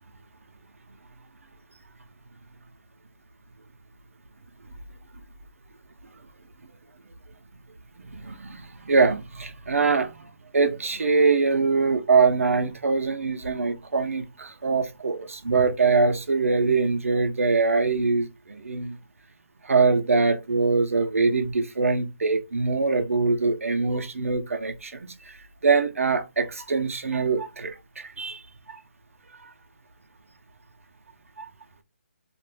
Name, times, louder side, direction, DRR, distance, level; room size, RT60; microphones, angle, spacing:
voice 1, 8.0-19.0 19.6-25.4 25.6-28.4 28.7-28.8 29.4-29.5 31.4-31.5, right 4 dB, 75° right, 0.7 m, -23 dB
2.5 x 2.4 x 3.4 m
hypercardioid pair, 175°, 7 cm